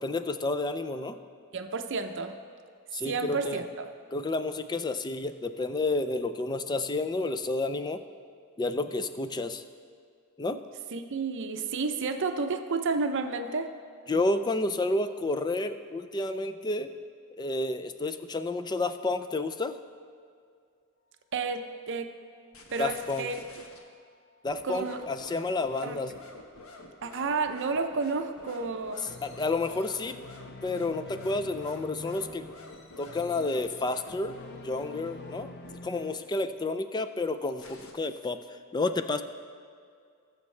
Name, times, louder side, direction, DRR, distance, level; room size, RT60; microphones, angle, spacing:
voice 1, 0.0-1.2 2.9-3.6 4.1-8.0 8.6-9.6 10.4-10.6 14.1-16.9 17.4-19.8 22.8-23.3 24.4-26.1 29.2-30.2 30.6-32.4 33.0-34.4 34.6-35.5 35.8-38.4 38.7-39.2, left 2 dB, 20° left, 9 dB, 0.4 m, -30 dB
voice 2, 1.5-2.4 3.0-3.9 10.9-13.7 21.3-22.2 22.7-23.3 24.6-25.0 25.8-26.0 27.0-29.0, right 4 dB, 55° right, 7 dB, 0.6 m, -31 dB
sound 1, 22.5-23.8 24.5-35.7 37.5-37.9, left 2 dB, 65° left, 1.3 m, -48 dB
sound 2, 29.0-36.7, left 3 dB, 50° left, 0.7 m, -47 dB
19.5 x 7.1 x 3.3 m, 2.2 s
head